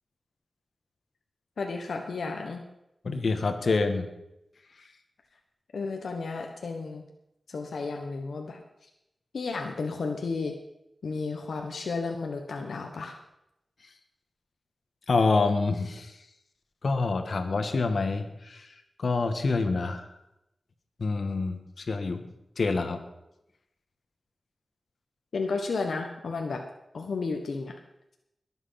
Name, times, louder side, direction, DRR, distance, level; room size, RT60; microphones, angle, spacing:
voice 1, 1.6-2.6 5.7-7.0 7.5-8.6 9.3-10.5 11.0-13.1 25.3-26.6 26.9-27.8, left 4 dB, 85° left, 3 dB, 1.3 m, -32 dB
voice 2, 3.0-4.1 15.1-16.1 16.8-18.7 19.0-20.0 21.0-22.3 22.6-23.0, left 3 dB, 70° left, 7 dB, 1.6 m, -27 dB
21.5 x 8.0 x 5.9 m, 0.85 s
wide cardioid pair, 75°, 0 cm